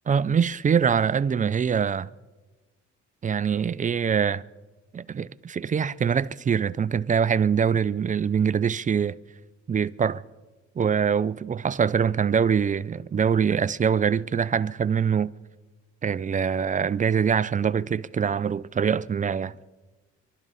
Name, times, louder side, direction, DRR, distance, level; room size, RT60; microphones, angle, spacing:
voice 1, 0.1-2.1 3.2-4.4 4.9-9.2 9.7-10.2 10.8-15.3 16.0-19.5, right 7 dB, 25° right, 0.4 m, -24 dB
25.5 x 12.0 x 4.1 m
cardioid pair, 90°, 30 cm